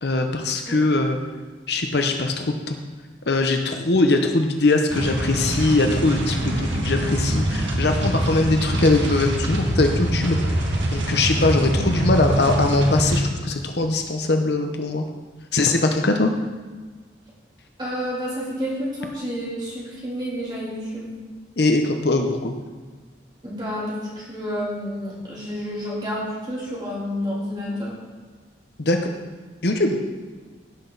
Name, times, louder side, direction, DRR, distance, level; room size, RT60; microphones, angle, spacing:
voice 1, 0.0-1.2 1.7-2.8 3.3-10.6 10.9-15.0 15.5-16.3 21.6-22.5 28.8-29.0 29.6-30.0, left 2 dB, 60° left, 5 dB, 0.8 m, -21 dB
sound 1, 4.9-13.2, right 1 dB, 85° right, 1.6 m, -24 dB
voice 2, 17.8-21.2 23.4-27.9, equal, 25° right, -6 dB, 3.3 m, -30 dB
16.0 x 6.2 x 4.0 m, 1.4 s
head